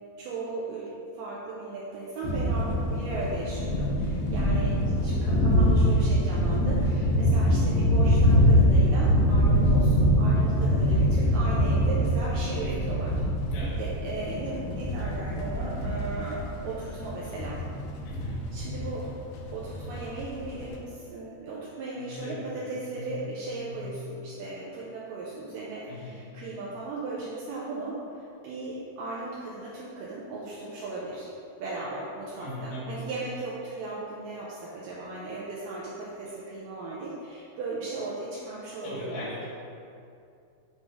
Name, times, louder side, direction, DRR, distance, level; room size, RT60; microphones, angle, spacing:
voice 1, 0.2-0.9 1.1-4.7 5.0-13.1 13.8-17.6 18.5-19.1 19.5-28.0 28.4-31.3 31.6-39.4, right 3 dB, 80° right, -6 dB, 2.2 m, -37 dB
sound 1, 2.2-20.7, equal, 85° left, 1.6 m, -24 dB
voice 2, 4.5-4.9 12.6-13.1 13.5-13.8 18.0-18.5 21.9-23.2 23.6-24.1 25.9-26.4 32.4-33.0 38.8-39.5, left 2 dB, 70° left, -8 dB, 3.1 m, -39 dB
7.2 x 2.8 x 4.7 m, 2.5 s
omnidirectional pair, 4.2 m